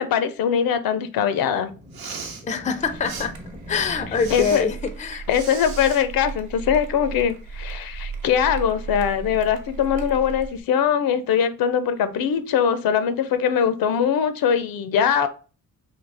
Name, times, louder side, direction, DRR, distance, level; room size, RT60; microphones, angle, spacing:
voice 1, 0.0-1.7 4.3-4.7 5.3-15.3, left 8 dB, 80° left, 0.5 m, -22 dB
sound 1, 1.5-5.3, equal, 20° right, 0.7 m, -42 dB
Respiratory sounds, 1.8-2.4 3.0-3.3 4.1-4.6 5.3-6.0, right 5 dB, 85° right, 1.0 m, -36 dB
voice 2, 2.4-3.4 3.7-5.2, left 6 dB, 20° left, 0.4 m, -25 dB
sound 2, 2.8-10.6, right 5 dB, 55° right, 1.0 m, -36 dB
4.0 x 2.8 x 3.3 m
cardioid pair, 105°, 35 cm